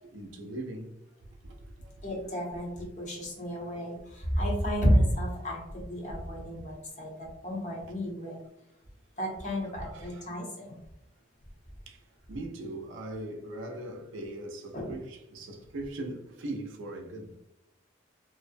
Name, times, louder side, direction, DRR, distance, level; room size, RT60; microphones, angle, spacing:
voice 1, 0.0-1.9 3.5-3.7 9.8-10.3 11.9-17.4, right 1 dB, 75° right, 0.4 m, -40 dB
voice 2, 2.0-8.4 9.2-10.8 14.7-14.9, equal, 35° left, 0.7 m, -31 dB
2.5 x 2.0 x 2.5 m
head